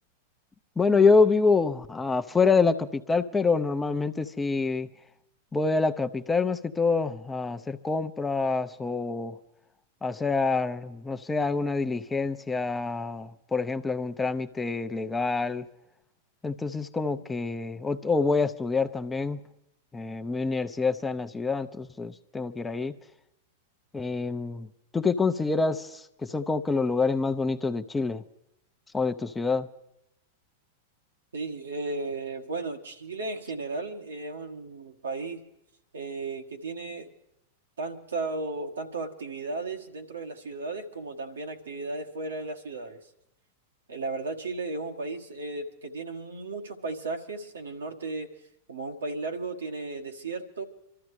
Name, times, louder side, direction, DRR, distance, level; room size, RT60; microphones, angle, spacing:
voice 1, 0.8-4.9 5.5-9.4 10.0-15.7 16.4-19.4 19.9-22.9 23.9-24.7 24.9-28.2 28.9-29.7, left 4 dB, 15° left, 0.7 m, -26 dB
voice 2, 31.3-35.4 35.9-37.1 37.8-43.0 43.9-48.3 48.7-50.6, right 3 dB, 85° right, 1.6 m, -35 dB
25.5 x 13.5 x 3.3 m
hypercardioid pair, 100°, 0 cm